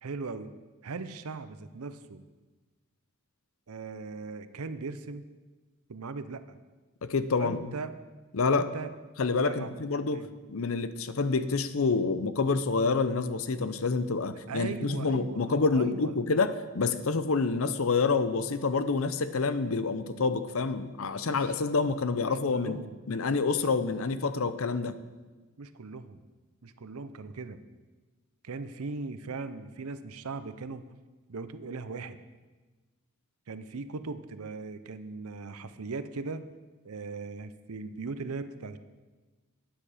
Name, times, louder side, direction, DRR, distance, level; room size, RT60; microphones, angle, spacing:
voice 1, 0.0-0.5 0.8-2.2 3.7-5.2 5.9-6.6 7.4-7.9 8.5-8.9 9.4-9.7 10.1-10.3 14.5-16.1 21.2-21.6 22.3-23.0 23.5-23.7 25.6-26.3 26.6-27.6 28.4-30.9 31.3-32.2 33.5-36.4 36.8-38.8, right 4 dB, 90° right, 12 dB, 0.7 m, -39 dB
voice 2, 7.0-7.6 8.3-8.7 9.2-22.8 23.1-24.9, left 4 dB, 70° left, 12 dB, 0.6 m, -28 dB
12.0 x 9.2 x 5.0 m, 1.3 s
head